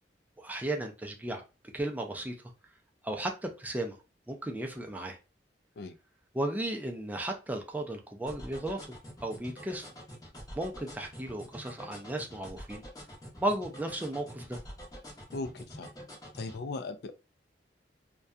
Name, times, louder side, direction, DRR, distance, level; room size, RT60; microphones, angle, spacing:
voice 1, 0.4-1.4 1.7-2.4 3.0-4.0 4.3-5.2 6.3-8.8 9.2-9.9 10.6-12.8 13.4-14.6, right 1 dB, 10° right, 0.4 m, -34 dB
sound 1, 8.3-16.6, equal, 20° left, 0.7 m, -46 dB
voice 2, 15.3-15.9 16.3-17.1, left 3 dB, 65° left, 0.3 m, -38 dB
2.6 x 2.2 x 2.2 m
head